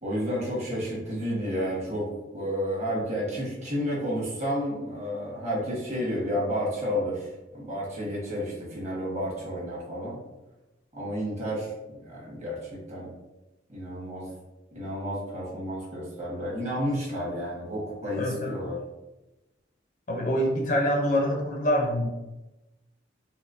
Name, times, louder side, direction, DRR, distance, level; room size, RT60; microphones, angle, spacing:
voice 1, 0.0-10.2 10.9-13.1 13.7-14.3 14.7-18.8, equal, 40° right, -6 dB, 1.4 m, -31 dB
voice 2, 18.2-18.6 20.1-22.1, equal, 45° left, 1 dB, 0.5 m, -25 dB
4.3 x 2.0 x 2.5 m, 1.0 s
head